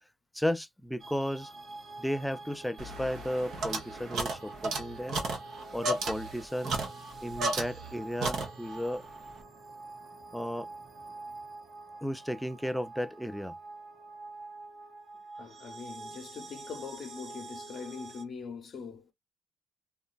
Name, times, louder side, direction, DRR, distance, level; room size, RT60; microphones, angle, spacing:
voice 1, 0.3-1.5 2.0-5.2 5.7-6.8 7.2-9.0 10.3-10.7 12.0-13.5, equal, ahead, 0.3 m, -34 dB
sound 1, 1.0-18.2, right 3 dB, 50° right, 1.0 m, -46 dB
sound 2, 2.8-8.9, right 2 dB, 70° right, 0.7 m, -34 dB
voice 2, 15.3-19.1, left 5 dB, 55° left, 0.6 m, -42 dB
2.9 x 2.3 x 2.2 m
cardioid pair, 90°, 0 cm